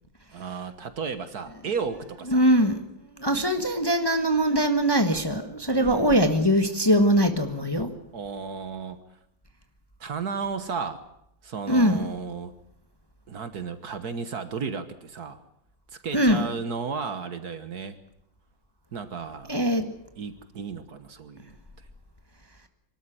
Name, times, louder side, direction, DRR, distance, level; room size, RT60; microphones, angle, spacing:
voice 1, 0.3-2.4 5.7-6.3 8.1-9.0 10.0-11.0 11.4-12.5 13.3-15.4 15.9-18.0 18.9-19.6 20.2-21.6, right 5 dB, 55° right, 11 dB, 1.6 m, -34 dB
voice 2, 2.3-2.8 3.2-7.9 11.7-12.1 16.1-16.5 19.5-19.8, equal, 15° left, 6 dB, 1.3 m, -22 dB
24.5 x 13.0 x 10.0 m, 0.78 s
omnidirectional pair, 2.1 m